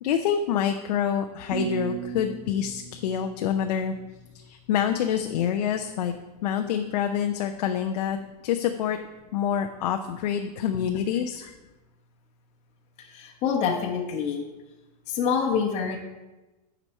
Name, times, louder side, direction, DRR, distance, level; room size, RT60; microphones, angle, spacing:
voice 1, 0.0-3.9 4.3-6.1 6.4-8.2 8.4-9.0 9.3-11.5, left 9 dB, 80° left, 6 dB, 0.6 m, -27 dB
sound 1, 1.5-4.5, right 7 dB, ahead, 1.0 m, -36 dB
voice 2, 13.0-14.4 15.1-16.0, left 6 dB, 30° left, -1 dB, 1.0 m, -26 dB
9.0 x 5.1 x 4.4 m, 1.1 s
supercardioid pair, 155°, 21 cm